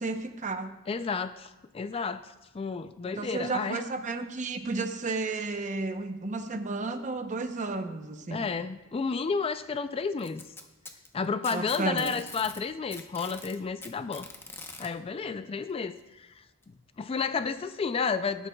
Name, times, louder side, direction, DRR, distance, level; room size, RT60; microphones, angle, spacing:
voice 1, 0.0-0.7 3.2-8.5 11.5-12.1, right 3 dB, 35° right, 8 dB, 0.7 m, -32 dB
voice 2, 0.9-3.8 8.3-10.4 11.1-14.3 14.8-16.4 17.0-18.5, left 5 dB, 25° left, 11 dB, 0.3 m, -31 dB
Packing tape duct tape, 10.2-12.6 12.9-14.9 16.0-16.1 16.6-16.7 17.6-17.7, left 3 dB, 10° left, 0.8 m, -43 dB
18.5 x 9.8 x 2.3 m, 1.0 s
head